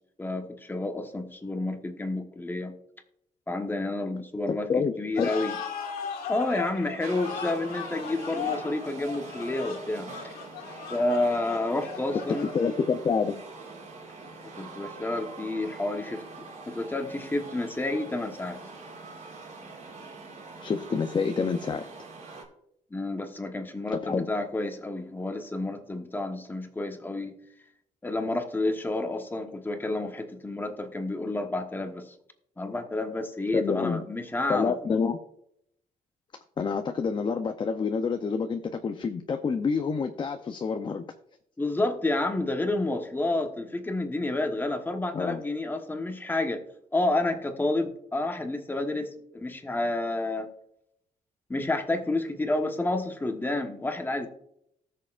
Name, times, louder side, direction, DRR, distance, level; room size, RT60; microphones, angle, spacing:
voice 1, 0.2-2.7 3.5-5.6 6.3-10.1 10.9-12.5 14.6-16.2 16.7-18.6 22.9-27.3 28.0-32.1 32.6-34.8 41.6-46.6 46.9-50.5 51.5-54.3, left 2 dB, 15° left, 5 dB, 1.1 m, -30 dB
voice 2, 4.5-5.3 12.5-13.4 20.6-21.9 23.9-24.3 33.5-34.0 34.5-35.2 36.6-41.0 45.1-45.4, left 5 dB, 30° left, 6 dB, 0.6 m, -28 dB
sound 1, 5.1-13.0, left 7 dB, 90° left, 1.8 m, -37 dB
sound 2, 7.0-22.4, right 3 dB, 55° right, 4.0 m, -44 dB
19.0 x 6.6 x 2.5 m, 0.74 s
cardioid pair, 135°, 15 cm